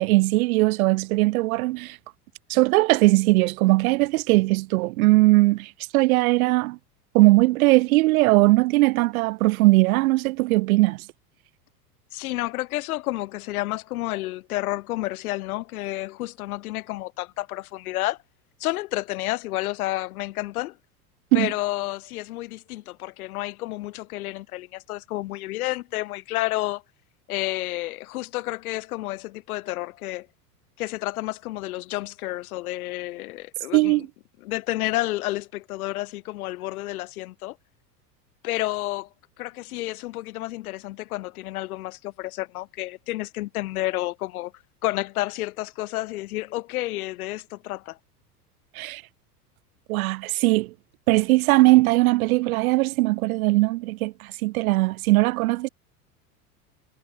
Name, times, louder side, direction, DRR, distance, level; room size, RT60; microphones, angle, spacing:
voice 1, 0.0-2.0 2.5-6.8 7.1-11.0 21.3-21.5 33.7-34.1 48.7-49.0 49.9-50.7 51.1-55.7, right 21 dB, 60° right, 6.4 m, -20 dB
voice 2, 12.1-18.2 18.6-20.8 21.3-26.8 27.3-30.3 30.8-34.0 34.4-37.6 38.4-39.1 39.4-44.5 44.8-48.0, left 17 dB, 65° left, 7.9 m, -30 dB
hypercardioid pair, 90°, 47 cm